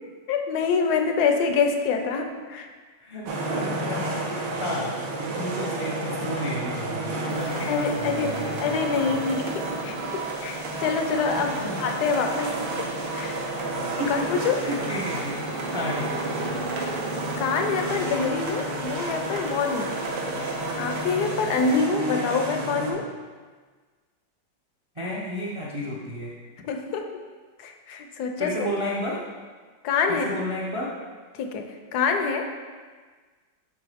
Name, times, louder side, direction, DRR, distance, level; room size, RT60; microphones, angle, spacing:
voice 1, 0.3-2.7 7.7-10.0 10.4-12.6 13.1-13.4 14.1-14.6 17.4-19.9 20.7-23.1 26.6-27.1 27.6-28.7 29.8-30.3 31.4-31.7 31.9-32.5, left 5 dB, 70° left, 5 dB, 1.1 m, -26 dB
voice 2, 3.0-9.2 11.4-11.7 14.0-16.5 25.0-26.3 28.4-29.2 30.1-30.9, equal, 35° right, -5 dB, 0.5 m, -32 dB
sound 1, 3.3-22.9, right 2 dB, 80° right, 1.6 m, -31 dB
sound 2, 7.3-21.8, right 4 dB, 60° right, 1.1 m, -39 dB
9.2 x 3.7 x 3.5 m, 1.5 s
omnidirectional pair, 1.9 m